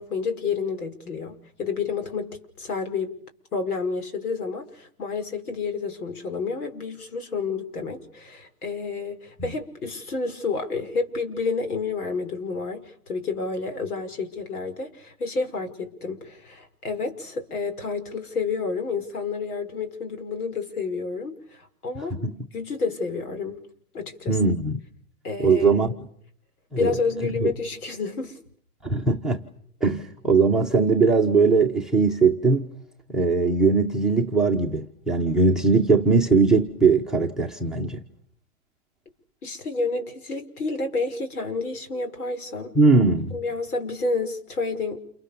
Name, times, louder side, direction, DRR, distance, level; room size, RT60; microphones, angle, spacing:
voice 1, 0.0-3.2 3.5-22.2 22.5-23.6 23.9-24.4 25.2-25.8 26.8-28.4 39.4-42.8 43.3-45.0, left 4 dB, 75° left, 8 dB, 5.9 m, -30 dB
voice 2, 24.3-24.8 25.4-25.9 26.7-27.0 27.4-27.5 28.8-29.4 29.8-32.7 33.1-38.0 42.7-43.4, right 4 dB, ahead, 6 dB, 1.1 m, -20 dB
29.0 x 28.5 x 7.0 m, 0.63 s
hypercardioid pair, 155°, 45 cm